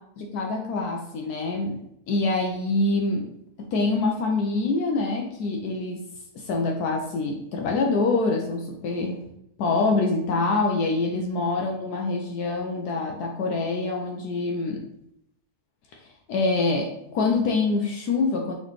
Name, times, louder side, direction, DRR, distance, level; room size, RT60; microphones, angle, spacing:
voice 1, 0.2-1.8 2.1-3.3 3.7-6.0 6.3-9.2 9.6-14.8 16.3-18.5, left 3 dB, 75° left, 2 dB, 1.1 m, -25 dB
4.1 x 4.0 x 3.0 m, 0.78 s
omnidirectional pair, 1.7 m